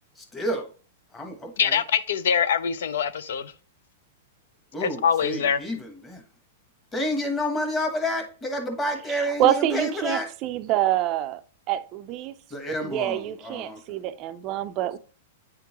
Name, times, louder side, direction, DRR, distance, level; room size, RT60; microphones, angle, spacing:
voice 1, 0.2-0.7 1.1-1.8 4.7-6.2 6.9-10.3 12.5-14.0, left 1 dB, 10° left, 1.0 m, -30 dB
voice 2, 1.6-3.5 4.8-5.6, left 7 dB, 75° left, 0.5 m, -24 dB
voice 3, 9.1-11.4 11.7-12.3 12.8-15.0, right 12 dB, 30° right, 0.4 m, -26 dB
9.1 x 3.7 x 2.9 m
supercardioid pair, 165°, 0 cm